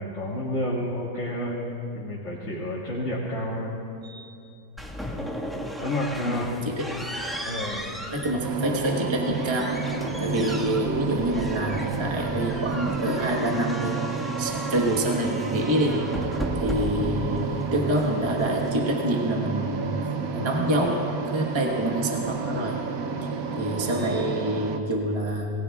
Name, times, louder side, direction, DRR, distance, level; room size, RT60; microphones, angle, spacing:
voice 1, 0.0-3.8 5.8-6.5 7.4-7.8 10.0-10.2 20.3-20.7 23.1-23.4, left 1 dB, 50° left, -7 dB, 2.3 m, -30 dB
sound 1, 4.8-18.8, equal, ahead, 1.4 m, -36 dB
voice 2, 6.2-7.1 8.1-9.8 10.2-16.0 16.5-22.8 23.2-25.5, right 1 dB, 20° right, -1 dB, 1.2 m, -27 dB
sound 2, 8.4-24.8, right 5 dB, 70° right, 1.3 m, -31 dB
27.5 x 20.0 x 2.4 m, 2.6 s
omnidirectional pair, 1.6 m